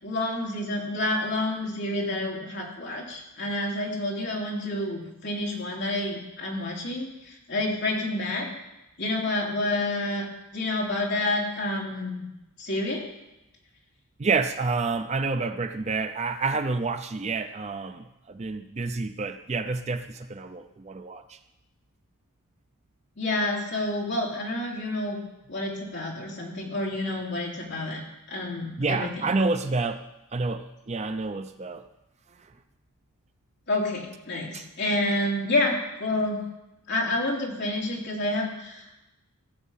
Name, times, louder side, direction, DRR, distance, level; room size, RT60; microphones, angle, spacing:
voice 1, 0.0-8.5 9.0-10.3 10.5-12.2 12.6-13.0 23.2-25.2 25.5-28.0 28.3-29.3 33.7-36.4 36.9-38.9, left 2 dB, 50° left, -2 dB, 3.0 m, -29 dB
voice 2, 14.2-21.4 28.8-30.1 30.3-31.9 34.5-34.7, right 3 dB, 30° right, 9 dB, 0.5 m, -29 dB
16.5 x 7.3 x 5.6 m, 0.93 s
head